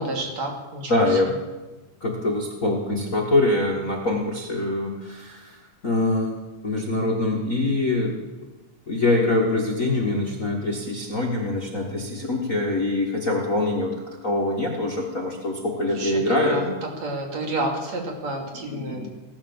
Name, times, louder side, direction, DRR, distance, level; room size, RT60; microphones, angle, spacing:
voice 1, 0.0-1.3 16.0-16.7 17.0-19.1, right 2 dB, 60° right, 1 dB, 3.9 m, -30 dB
voice 2, 0.9-1.3 2.0-5.6 5.8-6.3 6.6-8.1 8.9-13.9 14.2-16.7 18.7-19.1, left 2 dB, 35° left, 0 dB, 1.4 m, -24 dB
17.0 x 11.5 x 7.1 m, 1.2 s
omnidirectional pair, 3.4 m